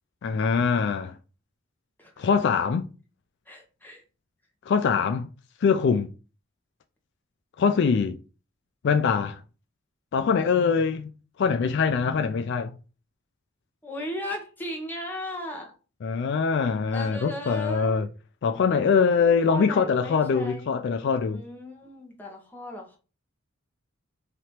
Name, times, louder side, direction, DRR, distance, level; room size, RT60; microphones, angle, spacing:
voice 1, 0.2-1.1 2.2-2.9 4.7-5.3 5.6-6.1 7.6-8.2 8.8-9.4 10.1-11.1 11.4-12.7 16.0-18.1 18.4-21.4, left 5 dB, 60° left, 0.3 m, -23 dB
voice 2, 2.0-2.3 3.5-4.0 13.8-15.7 16.9-18.1 18.7-18.9 19.5-20.7 21.2-23.0, left 1 dB, 10° left, 1.1 m, -36 dB
3.3 x 2.9 x 4.3 m
head